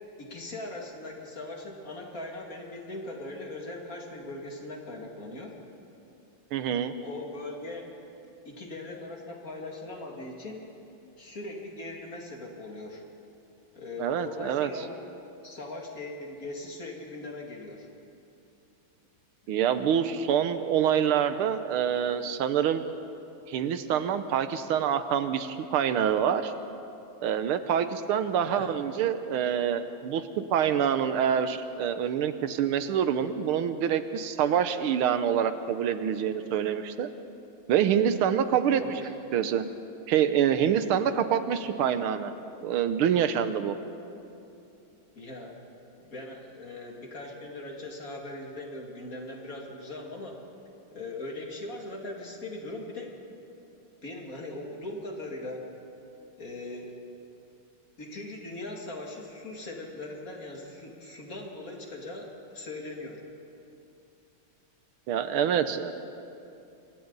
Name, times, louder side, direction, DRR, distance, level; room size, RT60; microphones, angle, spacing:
voice 1, 0.2-5.5 7.0-7.9 8.2-10.7 11.2-13.0 13.7-15.0 15.4-17.9 19.4-19.6 28.4-28.7 38.7-39.1 45.2-45.5 46.0-50.4 50.9-53.1 54.0-55.7 56.4-57.0 58.0-63.2, left 2 dB, 40° left, 0 dB, 2.8 m, -40 dB
voice 2, 6.5-6.9 14.0-14.7 19.5-22.8 23.5-26.5 27.2-30.2 30.5-37.1 37.7-39.0 39.3-39.6 40.1-42.3 42.6-43.7 65.1-65.9, right 8 dB, 80° right, 10 dB, 1.7 m, -26 dB
26.5 x 24.5 x 4.0 m, 2.8 s
omnidirectional pair, 2.4 m